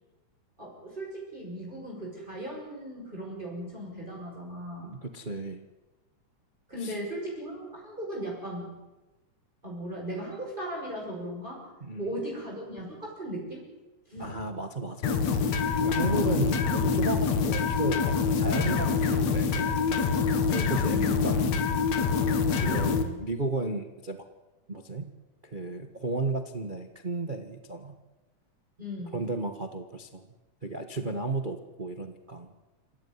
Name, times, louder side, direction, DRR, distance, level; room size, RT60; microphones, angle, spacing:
voice 1, 0.6-4.9 6.7-8.7 9.6-11.7 12.0-13.7 14.1-14.4 16.0-16.4 20.9-21.6 22.3-23.2 28.8-29.2, equal, 15° right, -3 dB, 6.5 m, -37 dB
voice 2, 4.8-5.7 6.8-6.9 11.8-12.1 14.2-15.1 15.8-20.0 20.5-21.5 22.5-24.3 24.7-25.1 25.4-28.0 29.1-30.3 30.6-32.5, right 2 dB, 50° right, 7 dB, 0.6 m, -34 dB
sound 1, 15.0-23.0, left 5 dB, 65° left, 2.8 m, -25 dB
27.0 x 15.5 x 9.7 m, 1.1 s
omnidirectional pair, 3.5 m